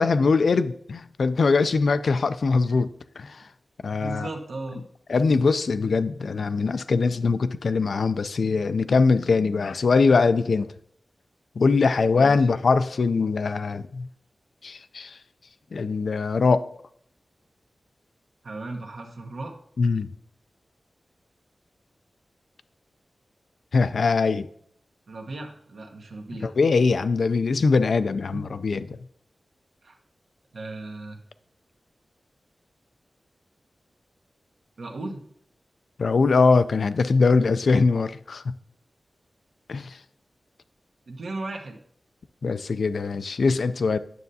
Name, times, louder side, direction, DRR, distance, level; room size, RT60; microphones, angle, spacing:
voice 1, 0.0-2.9 3.2-3.4 3.8-4.3 5.1-10.7 11.6-14.1 14.6-15.1 15.7-16.7 19.8-20.1 23.7-24.5 26.4-29.0 36.0-38.4 39.7-40.0 42.4-44.0, left 4 dB, 75° left, 12 dB, 0.3 m, -22 dB
voice 2, 4.0-4.8 12.1-12.5 18.4-19.5 25.1-26.5 28.3-28.4 29.8-30.0 30.5-31.2 34.8-35.2 41.1-41.8, right 2 dB, 80° right, 2 dB, 1.0 m, -36 dB
9.3 x 6.4 x 2.7 m, 0.66 s
wide cardioid pair, 100°, 0 cm